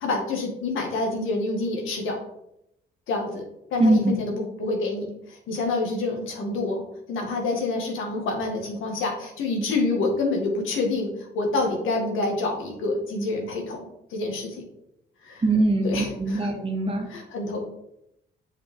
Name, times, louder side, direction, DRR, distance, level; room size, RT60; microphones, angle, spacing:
voice 1, 0.0-2.2 3.1-3.4 3.7-6.8 7.1-13.8 14.1-14.6 15.2-15.4 15.8-16.5 17.1-17.6, left 3 dB, 85° left, 1 dB, 1.9 m, -27 dB
voice 2, 3.8-4.1 15.4-17.1, right 2 dB, 30° right, 3 dB, 1.5 m, -22 dB
8.0 x 5.0 x 3.7 m, 0.80 s
cardioid pair, 90°, 20 cm